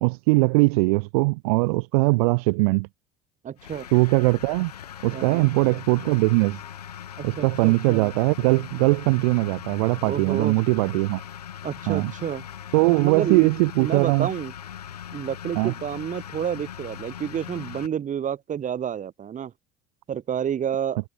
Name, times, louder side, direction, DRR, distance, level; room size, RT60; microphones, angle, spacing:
voice 1, 0.0-2.9 3.9-4.7 5.0-6.6 7.2-11.2 11.9-12.1 12.7-14.3 15.5-15.7, right 27 dB, 70° right, 0.7 m, -21 dB
voice 2, 3.4-3.9 5.1-5.5 7.2-8.1 10.0-10.6 11.6-12.4 13.0-13.5 13.8-14.5 15.1-19.5 20.1-21.0, right 9 dB, 40° right, 4.0 m, -29 dB
sound 1, 3.6-17.9, left 9 dB, 90° left, 1.1 m, -40 dB
hypercardioid pair, 70°, 20 cm